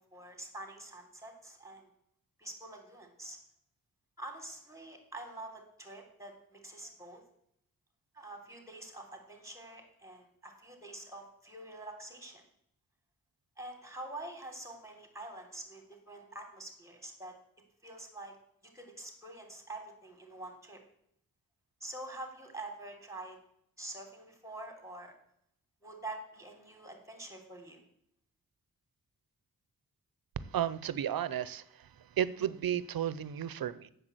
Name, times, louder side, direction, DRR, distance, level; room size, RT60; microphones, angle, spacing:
voice 1, 0.0-1.9 2.4-3.4 4.2-7.2 8.1-12.4 13.6-17.3 17.8-18.3 18.7-20.8 21.8-23.4 23.8-25.1 25.8-27.8, right 2 dB, 10° right, 3 dB, 3.3 m, -46 dB
voice 2, 30.5-31.9 32.2-33.9, right 10 dB, 75° right, 17 dB, 0.7 m, -33 dB
7.9 x 7.0 x 7.9 m, 0.72 s
cardioid pair, 55°, 36 cm